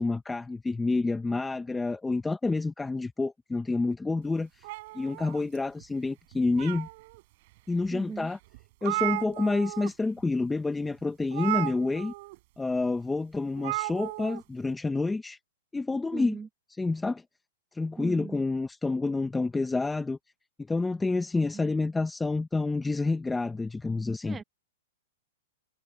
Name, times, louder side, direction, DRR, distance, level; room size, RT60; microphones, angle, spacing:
voice 1, 0.0-4.6 4.9-6.9 7.7-8.4 8.8-12.1 12.6-15.4 15.7-16.4 16.8-17.2 17.7-20.2 20.6-24.4, left 3 dB, 5° left, 0.9 m, -28 dB
sound 1, 4.6-5.8 6.3-7.2 7.8-7.9 8.3-8.4 8.5-9.9 10.2-10.4 11.3-12.4 13.6-14.4, right 21 dB, 50° right, 4.3 m, -34 dB
voice 2, 7.9-8.3 16.1-16.5 18.0-18.4 21.5-21.7 24.3-24.4, right 5 dB, 15° right, 1.3 m, -38 dB
hypercardioid pair, 145°, 0 cm